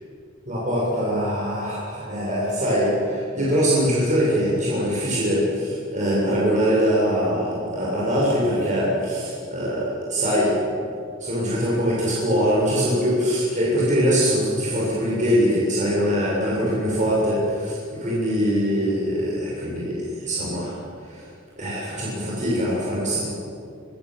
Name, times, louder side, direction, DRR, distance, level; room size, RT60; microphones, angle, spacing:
voice 1, 0.5-10.5 10.8-10.9 11.2-20.7 21.0-21.3 21.6-23.3, equal, 35° right, -6 dB, 7.1 m, -23 dB
24.0 x 21.5 x 7.8 m, 2.4 s
head